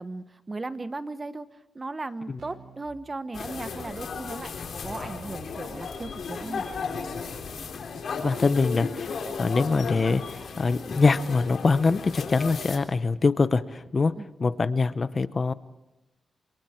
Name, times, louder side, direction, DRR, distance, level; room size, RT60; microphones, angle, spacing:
voice 1, 0.0-1.5 1.7-6.7 14.1-14.3, right 3 dB, 30° right, 11 dB, 1.3 m, -37 dB
Keyboard (musical), 2.4-2.9 4.9-13.8, right 6 dB, 80° right, 5.3 m, -56 dB
sound 1, 3.3-12.8, left 5 dB, 70° left, 3.9 m, -35 dB
voice 2, 8.2-14.1 14.4-15.5, left 4 dB, 40° left, 14 dB, 0.8 m, -24 dB
27.5 x 27.5 x 4.5 m, 0.97 s
cardioid pair, 85°, 0 cm